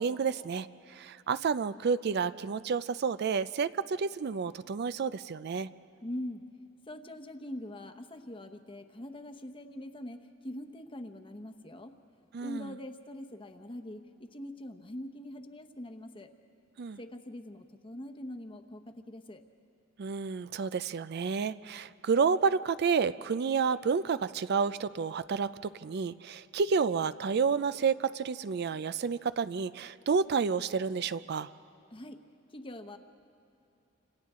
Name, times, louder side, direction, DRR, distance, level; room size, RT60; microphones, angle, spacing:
voice 1, 0.0-5.7 12.3-12.7 16.8-17.0 20.0-31.5, right 5 dB, 55° right, 14 dB, 0.4 m, -30 dB
voice 2, 6.0-6.5 6.9-11.9 12.4-16.3 17.0-19.4 31.9-32.2 32.5-33.0, left 1 dB, 25° left, 7 dB, 1.0 m, -43 dB
29.5 x 27.0 x 3.7 m, 2.7 s
head